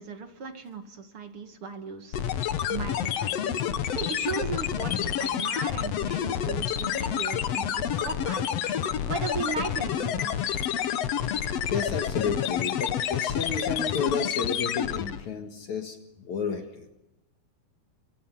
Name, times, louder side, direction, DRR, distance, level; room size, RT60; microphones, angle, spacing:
voice 1, 0.0-2.4 2.7-3.4 3.9-8.6 9.0-10.5, right 5 dB, 40° right, 6 dB, 2.5 m, -37 dB
sound 1, 2.1-15.3, left 9 dB, 75° left, 1.5 m, -29 dB
sound 2, 3.9-5.6 5.9-6.5 8.7-10.2, right 2 dB, 5° right, 5.0 m, -55 dB
voice 2, 11.3-16.9, left 5 dB, 55° left, 5 dB, 2.7 m, -32 dB
28.5 x 24.0 x 5.8 m, 0.94 s
omnidirectional pair, 4.4 m